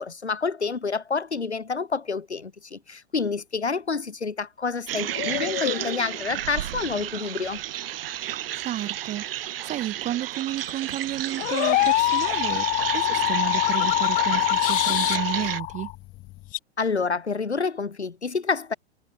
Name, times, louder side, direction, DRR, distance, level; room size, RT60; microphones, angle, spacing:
voice 1, 0.0-7.6 16.8-18.7, left 4 dB, 80° left, 3.0 m, -28 dB
sound 1, 4.9-15.6, right 12 dB, 60° right, 0.9 m, -32 dB
sound 2, 5.1-6.4 10.7-16.6, left 19 dB, 25° left, 0.7 m, -25 dB
voice 2, 8.5-12.7 12.9-15.9, right 13 dB, 20° right, 1.0 m, -32 dB
figure-of-eight pair, 100°, 33 cm